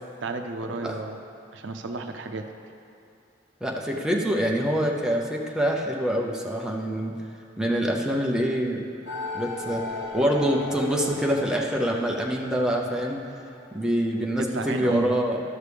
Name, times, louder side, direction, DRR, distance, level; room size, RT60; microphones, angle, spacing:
voice 1, 0.2-1.2 1.5-2.4 14.4-15.2, right 3 dB, 80° right, 5 dB, 0.6 m, -32 dB
voice 2, 3.6-7.1 7.6-8.8 9.3-9.8 10.1-13.2 13.7-15.4, equal, 5° right, -1 dB, 0.6 m, -25 dB
sound 1, 9.1-14.2, left 3 dB, 65° left, 1.0 m, -37 dB
12.5 x 6.6 x 3.4 m, 2.6 s
head